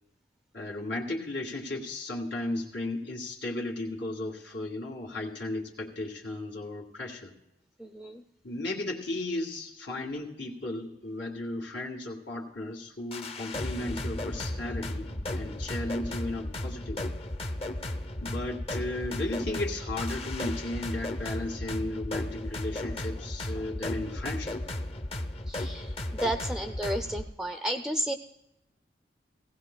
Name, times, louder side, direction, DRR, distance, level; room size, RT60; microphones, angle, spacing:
voice 1, 0.5-7.3 8.4-15.1 15.4-17.1 18.2-24.6, left 2 dB, 85° left, -1 dB, 2.0 m, -35 dB
voice 2, 7.8-8.2 25.5-28.2, right 1 dB, 5° right, 7 dB, 0.4 m, -32 dB
sound 1, 13.1-27.3, left 1 dB, 35° left, 0.6 m, -35 dB
18.0 x 16.0 x 2.2 m, 0.89 s
head